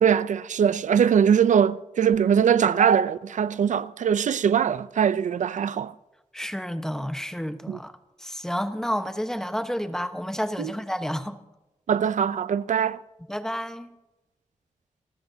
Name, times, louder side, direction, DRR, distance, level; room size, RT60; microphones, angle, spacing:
voice 1, 0.0-5.9 7.7-7.8 10.6-10.7 11.9-13.0, right 8 dB, 85° right, 0.5 m, -22 dB
voice 2, 6.3-7.9 8.2-11.4 13.3-13.9, equal, 5° left, 1.1 m, -30 dB
27.0 x 13.5 x 2.8 m
wide cardioid pair, 95°, 12 cm